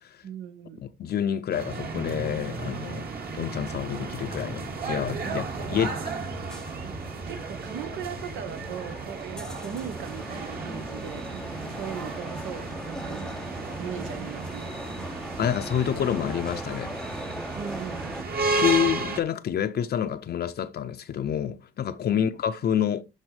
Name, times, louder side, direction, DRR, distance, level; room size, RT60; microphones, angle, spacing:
voice 1, 0.2-0.8 5.3-5.5 5.7-6.0 7.3-11.3 11.7-13.4 13.8-14.7 17.5-18.0, right 8 dB, 85° right, 1.0 m, -38 dB
voice 2, 0.8-3.1 3.3-6.2 15.4-16.9 18.6-23.0, left 9 dB, 55° left, 0.6 m, -28 dB
sound 1, 1.5-19.2, right 3 dB, 50° right, 1.9 m, -34 dB
sound 2, 5.4-18.2, left 1 dB, 5° left, 0.5 m, -41 dB
12.0 x 4.1 x 3.3 m
cardioid pair, 90°, 20 cm